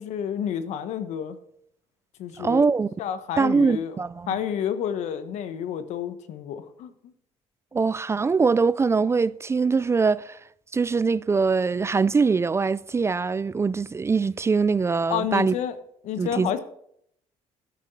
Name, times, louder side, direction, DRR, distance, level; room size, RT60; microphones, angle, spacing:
voice 1, 0.0-1.4 2.2-2.7 3.0-4.0 4.3-6.9 15.1-15.8 16.0-16.6, left 9 dB, 75° left, 1.3 m, -29 dB
voice 2, 2.4-2.9 3.4-4.4 7.7-10.4 10.7-15.6 16.2-16.5, right 4 dB, 20° right, 0.4 m, -23 dB
11.5 x 6.5 x 6.9 m
cardioid pair, 95°, 12 cm